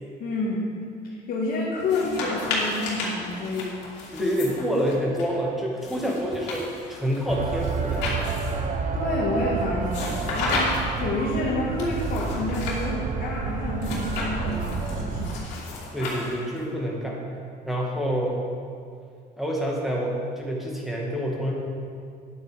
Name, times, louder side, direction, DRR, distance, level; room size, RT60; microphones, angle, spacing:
voice 1, 0.2-0.7 1.0-3.7 4.2-4.3 8.9-10.7 11.0-15.3, left 2 dB, 60° left, -5 dB, 1.8 m, -29 dB
sound 1, 1.8-5.2 5.8-8.7 9.9-11.0 11.8-12.9 13.8-16.6, left 2 dB, 90° left, 2.7 m, -32 dB
voice 2, 4.1-8.0 15.9-17.2 17.6-18.4 19.4-21.5, equal, ahead, -3 dB, 2.1 m, -27 dB
sound 2, 7.3-15.4, right 4 dB, 45° right, 0.9 m, -29 dB
10.5 x 8.0 x 5.1 m, 2.4 s
cardioid pair, 110°, 17 cm